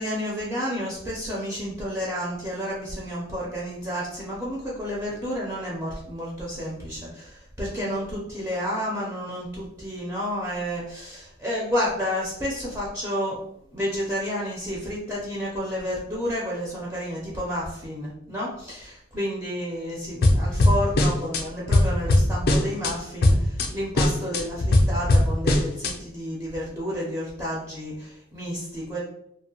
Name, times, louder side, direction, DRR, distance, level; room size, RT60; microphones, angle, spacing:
voice 1, 0.0-13.4 13.7-29.0, equal, 10° right, -5 dB, 0.5 m, -30 dB
sound 1, 20.2-21.4 21.7-22.9 23.2-23.7 24.0-25.9, left 1 dB, 55° left, 0.4 m, -19 dB
2.6 x 2.0 x 2.7 m, 0.75 s
head